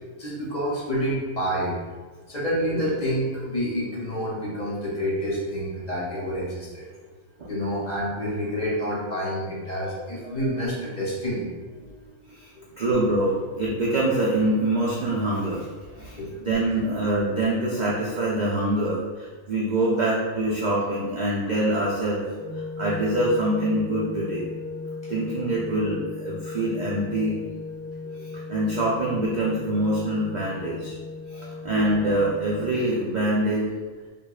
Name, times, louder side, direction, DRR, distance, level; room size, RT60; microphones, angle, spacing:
voice 1, 0.2-1.7 2.3-6.8 7.5-11.5 16.2-16.5 28.3-28.4 31.3-31.5, equal, 35° left, -6 dB, 0.8 m, -28 dB
voice 2, 12.8-15.7 16.0-22.2 22.5-24.5 25.1-27.4 28.2-30.9 31.3-33.7, right 1 dB, 80° right, -6 dB, 0.4 m, -25 dB
sound 1, 22.4-32.8, left 3 dB, 40° right, 1.4 m, -36 dB
4.9 x 2.4 x 2.3 m, 1.4 s
omnidirectional pair, 1.4 m